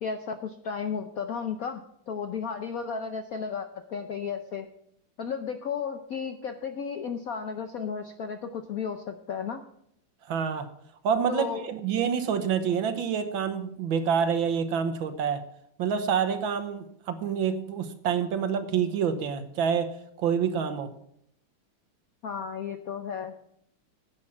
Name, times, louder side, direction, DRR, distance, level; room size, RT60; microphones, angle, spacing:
voice 1, 0.0-4.7 5.2-9.6 11.3-11.7 22.2-23.3, left 6 dB, 70° left, 7 dB, 0.8 m, -34 dB
voice 2, 10.3-10.7 11.0-15.4 15.8-19.9 20.2-20.9, right 7 dB, 70° right, 9 dB, 1.7 m, -27 dB
10.5 x 8.7 x 5.6 m, 0.72 s
omnidirectional pair, 2.4 m